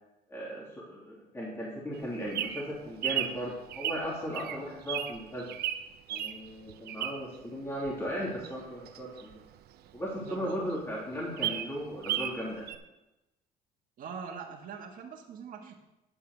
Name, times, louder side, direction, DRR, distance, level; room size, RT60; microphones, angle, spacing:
voice 1, 0.3-5.5 6.1-9.4 9.9-12.6, equal, 15° left, -5 dB, 3.2 m, -36 dB
Bird vocalization bird call bird song, 1.9-7.4 7.8-10.0 10.4-10.5 10.7-10.8 11.1-12.4 12.7-12.8, right 11 dB, 70° right, 0.8 m, -35 dB
voice 2, 10.3-10.6 14.0-15.8, right 6 dB, 55° right, 0 dB, 1.7 m, -42 dB
10.5 x 5.6 x 6.7 m, 0.96 s
cardioid pair, 110°, 17 cm